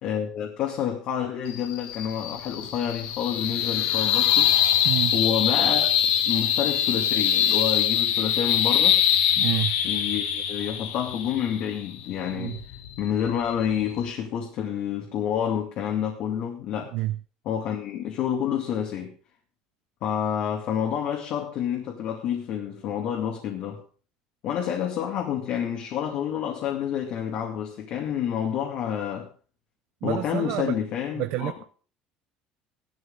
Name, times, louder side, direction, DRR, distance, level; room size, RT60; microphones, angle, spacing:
voice 1, 0.0-4.5 5.1-5.9 6.3-9.0 9.8-12.6 13.0-16.9 17.4-19.1 20.0-23.8 24.4-29.3 30.0-31.5, left 9 dB, 50° left, 1 dB, 2.4 m, -28 dB
sound 1, 1.5-14.1, left 10 dB, 75° left, 1.6 m, -24 dB
voice 2, 9.4-9.7 12.3-12.6 16.9-17.2 30.0-30.8 31.2-31.6, right 17 dB, 65° right, 10 dB, 0.7 m, -28 dB
16.0 x 12.5 x 3.8 m, 0.41 s
cardioid pair, 155°, 2 cm